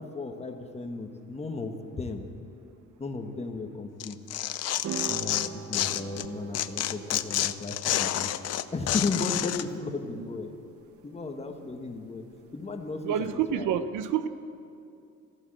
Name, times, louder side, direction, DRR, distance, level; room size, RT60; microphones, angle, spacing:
voice 1, 0.0-2.3 3.0-4.2 5.1-8.3 8.7-10.5 11.0-12.2 12.5-13.2 13.5-13.8, left 3 dB, 20° left, 5 dB, 1.3 m, -35 dB
Tearing, 4.0-6.3 6.5-9.6, left 12 dB, 55° left, 0.6 m, -29 dB
sound 1, 4.8-13.3, right 9 dB, 50° right, 0.8 m, -44 dB
voice 2, 13.0-14.3, right 9 dB, 85° right, 11 dB, 0.9 m, -28 dB
14.5 x 12.5 x 7.7 m, 2.5 s
cardioid pair, 145°, 30 cm